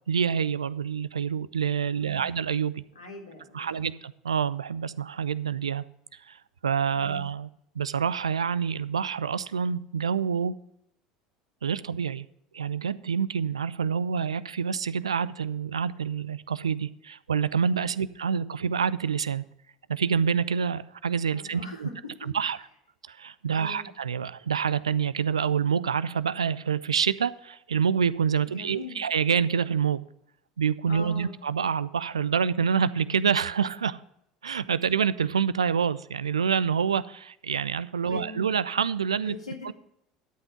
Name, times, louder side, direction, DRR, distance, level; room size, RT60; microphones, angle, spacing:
voice 1, 0.1-2.8 3.5-5.8 6.3-6.4 6.6-7.5 7.8-10.5 11.6-12.3 12.5-19.4 19.9-21.9 22.3-22.6 23.1-30.0 30.6-34.0 34.4-39.4 39.6-39.7, right 7 dB, 80° right, 17 dB, 0.4 m, -27 dB
voice 2, 1.9-2.3 3.0-3.9 7.0-7.2 17.9-18.1 21.3-21.9 22.2-22.3 23.5-23.9 28.4-29.0 30.9-31.4 38.0-38.4 39.2-39.7, left 4 dB, 80° left, 0 dB, 2.1 m, -42 dB
12.5 x 5.6 x 5.8 m, 0.75 s
figure-of-eight pair, 70°, 3 cm